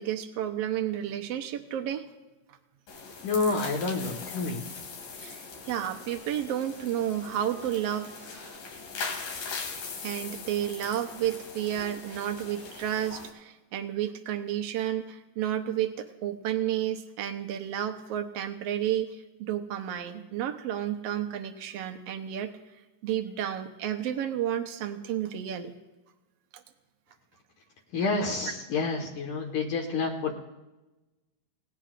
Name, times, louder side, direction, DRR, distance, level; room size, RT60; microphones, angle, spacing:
voice 1, 0.0-2.1 2.5-2.6 5.2-8.6 10.0-22.5 23.0-25.7 26.5-26.6, right 11 dB, 75° right, 6 dB, 1.5 m, -31 dB
sound 1, 2.9-13.3, left 4 dB, 85° left, 4.0 m, -40 dB
voice 2, 3.2-4.6 27.9-30.3, left 3 dB, 65° left, 0 dB, 2.9 m, -29 dB
28.0 x 17.5 x 2.5 m, 1.1 s
omnidirectional pair, 4.0 m